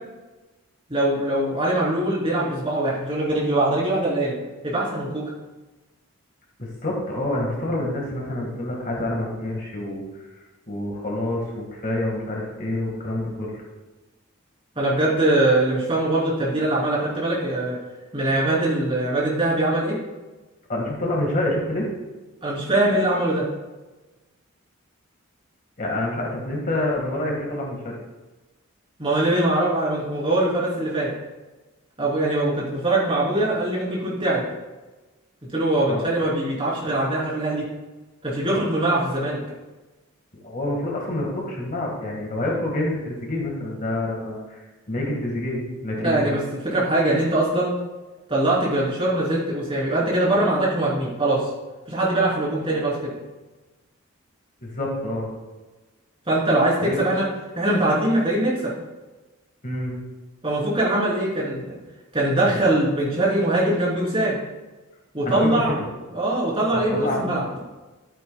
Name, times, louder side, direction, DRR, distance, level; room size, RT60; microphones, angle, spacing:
voice 1, 0.9-4.3 4.6-5.2 14.7-17.7 18.1-20.0 22.4-23.4 29.0-31.1 32.0-34.4 35.5-37.6 38.2-39.4 46.0-47.7 48.3-51.5 51.9-53.1 56.3-57.2 57.5-58.7 60.4-61.8 62.1-64.4 65.1-65.8 66.1-67.5, right 1 dB, 25° right, -7 dB, 3.3 m, -22 dB
voice 2, 6.6-10.0 10.7-13.6 20.7-21.9 25.8-28.0 35.9-36.0 40.3-44.6 44.9-46.4 54.6-55.3 56.8-57.0 59.6-60.0 65.2-65.9 66.7-67.3, left 1 dB, 40° left, -2 dB, 1.7 m, -27 dB
12.5 x 9.1 x 2.3 m, 1.2 s
head